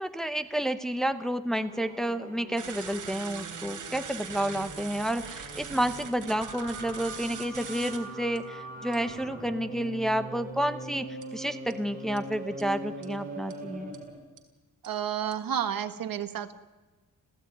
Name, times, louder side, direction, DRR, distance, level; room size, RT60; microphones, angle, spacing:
voice 1, 0.0-14.0, right 1 dB, ahead, 9 dB, 0.9 m, -30 dB
sound 1, 1.5-14.2, right 2 dB, 25° right, 7.4 m, -42 dB
sound 2, 2.6-8.0 8.4-8.5 8.9-9.1 11.2-11.3 11.7-11.8 12.2-12.3 12.6-12.7 13.0-13.1 13.5-13.6 13.9-14.0 14.4-14.5 14.8-14.9 15.3-15.4, right 6 dB, 60° right, 3.4 m, -42 dB
voice 2, 14.8-16.5, right 9 dB, 80° right, 9 dB, 1.6 m, -31 dB
29.0 x 15.5 x 9.3 m, 1.2 s
wide cardioid pair, 175°, 34 cm